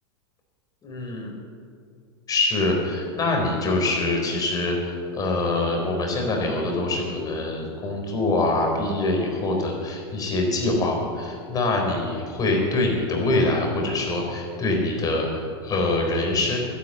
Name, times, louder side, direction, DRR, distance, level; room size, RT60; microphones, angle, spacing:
voice 1, 0.8-1.3 2.3-16.6, left 2 dB, 25° left, 1 dB, 4.3 m, -24 dB
12.0 x 11.5 x 8.0 m, 2.2 s
hypercardioid pair, 115°, 14 cm